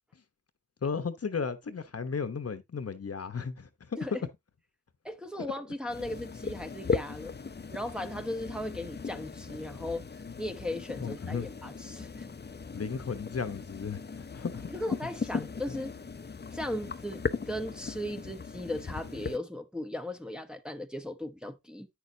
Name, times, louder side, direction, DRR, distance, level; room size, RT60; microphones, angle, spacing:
voice 1, 0.8-4.0 5.4-5.5 11.0-11.5 12.7-14.7 15.3-15.8, left 5 dB, 50° left, 1.1 m, -35 dB
voice 2, 5.0-7.3 7.7-12.3 14.7-15.9 16.5-21.9, left 1 dB, 5° right, 1.0 m, -37 dB
sound 1, 5.9-19.4, left 4 dB, 35° left, 0.7 m, -38 dB
9.3 x 6.7 x 2.8 m
cardioid pair, 70°, 31 cm